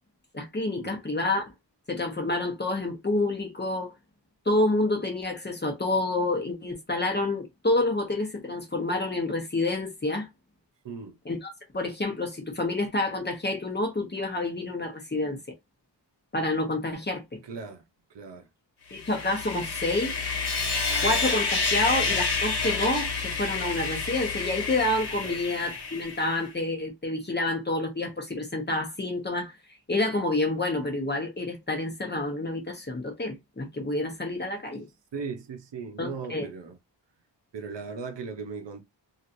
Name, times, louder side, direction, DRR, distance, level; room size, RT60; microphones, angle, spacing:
voice 1, 0.3-1.5 1.9-3.9 4.5-10.3 11.2-15.4 16.3-17.4 18.9-20.1 21.0-29.5 29.9-34.8 36.0-36.5, left 2 dB, 25° left, 0.8 m, -28 dB
voice 2, 10.8-11.2 17.4-17.8 18.1-18.5 25.2-25.4 35.1-36.8 37.5-38.8, right 5 dB, 70° right, 0.8 m, -37 dB
Sawing, 18.9-26.4, left 4 dB, 60° left, 1.5 m, -29 dB
3.1 x 2.7 x 2.6 m
wide cardioid pair, 145°, 44 cm